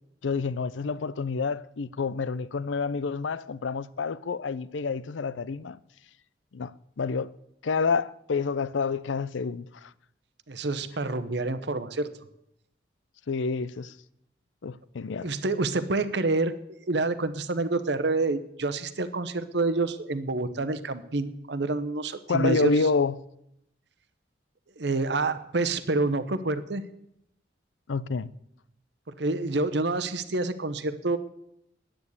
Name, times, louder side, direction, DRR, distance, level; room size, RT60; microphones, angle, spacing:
voice 1, 0.2-5.8 6.5-7.3 7.6-9.9 13.3-14.0 14.6-15.3 22.3-23.2 27.9-28.3, left 4 dB, 85° left, 0.5 m, -28 dB
voice 2, 10.5-12.1 15.2-16.5 16.9-22.7 24.8-26.8 29.2-31.2, right 2 dB, 65° right, 0.9 m, -27 dB
11.0 x 8.9 x 8.3 m
head